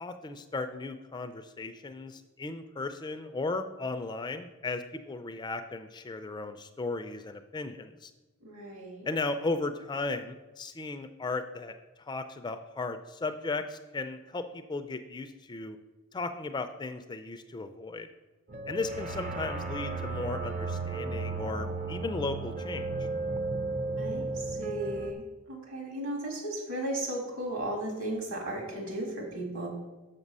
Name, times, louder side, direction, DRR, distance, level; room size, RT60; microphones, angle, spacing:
voice 1, 0.0-8.1 9.1-15.8 16.1-18.1 18.7-23.1, left 3 dB, 20° left, 8 dB, 0.3 m, -36 dB
voice 2, 8.4-9.1 24.0-29.7, right 1 dB, 65° right, 0 dB, 2.3 m, -35 dB
sound 1, 18.5-25.1, right 3 dB, 35° right, 0.5 m, -34 dB
6.8 x 6.0 x 5.4 m, 1.2 s
head